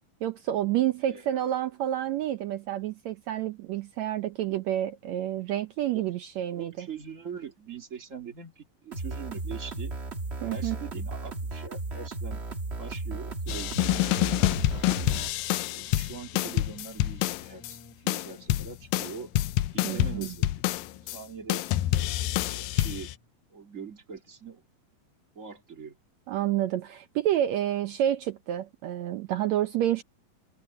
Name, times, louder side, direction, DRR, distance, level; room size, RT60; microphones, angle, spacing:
voice 1, 0.2-6.9 10.4-10.8 19.8-20.3 26.3-30.0, right 12 dB, 80° right, 1.6 m, -29 dB
voice 2, 1.1-1.4 5.9-6.1 6.5-9.9 10.5-12.4 12.8-14.8 15.7-17.8 18.0-19.3 19.7-20.6 21.1-21.7 22.4-23.1 23.5-24.6 25.4-26.0, right 6 dB, 25° right, 2.0 m, -42 dB
sound 1, 8.9-15.3, right 3 dB, 50° right, 0.7 m, -35 dB
sound 2, 13.5-17.7 18.1-21.2 21.5-23.2, left 15 dB, 80° left, 2.4 m, -27 dB
Keyboard (musical), 15.8-23.4, left 3 dB, 55° left, 4.9 m, -56 dB
omnidirectional pair, 4.1 m